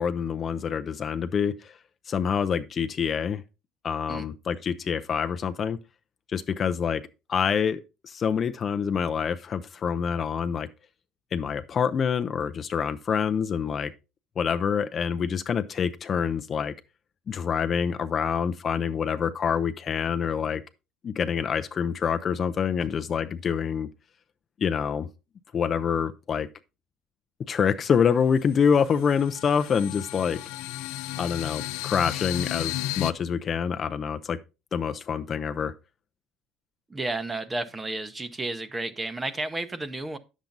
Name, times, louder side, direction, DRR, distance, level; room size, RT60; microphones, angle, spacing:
voice 1, 0.0-1.7 2.1-3.4 3.8-5.8 6.3-7.0 7.3-10.7 11.3-13.9 14.4-16.7 17.3-20.6 21.0-23.9 24.6-25.1 25.5-26.5 27.5-30.4 31.2-34.4 34.7-35.7, left 7 dB, 25° left, 0.5 m, -26 dB
sound 1, 28.2-33.1, left 16 dB, 90° left, 0.6 m, -34 dB
voice 2, 36.9-40.2, right 2 dB, 10° right, 0.7 m, -32 dB
10.5 x 7.2 x 3.9 m
cardioid pair, 180°, 0 cm